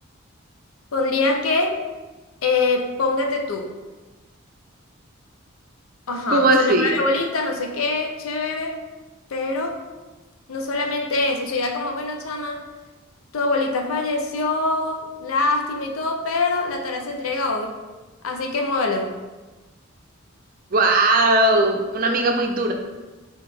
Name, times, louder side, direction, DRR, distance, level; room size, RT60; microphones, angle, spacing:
voice 1, 0.9-1.8 2.4-3.7 6.1-8.8 9.3-9.8 10.5-12.7 13.3-17.8 18.2-19.1, left 3 dB, 85° left, 3 dB, 0.6 m, -24 dB
voice 2, 6.3-6.9 20.7-22.7, right 2 dB, 40° right, 3 dB, 0.5 m, -18 dB
3.9 x 3.9 x 3.4 m, 1.2 s
head